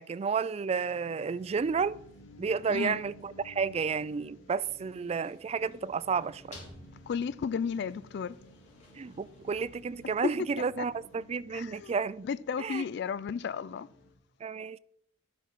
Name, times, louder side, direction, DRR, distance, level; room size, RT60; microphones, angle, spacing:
voice 1, 0.0-2.0 2.4-6.5 8.9-12.2 12.6-12.8 14.4-14.8, right 5 dB, 30° right, 0.3 m, -31 dB
sound 1, 0.7-14.1, left 1 dB, 85° left, 2.6 m, -55 dB
sound 2, 4.9-10.9, left 1 dB, 35° left, 3.6 m, -55 dB
voice 2, 7.1-8.4 10.2-10.3 11.5-12.0 12.2-13.9, left 6 dB, 60° left, 0.3 m, -33 dB
12.0 x 6.1 x 5.6 m
head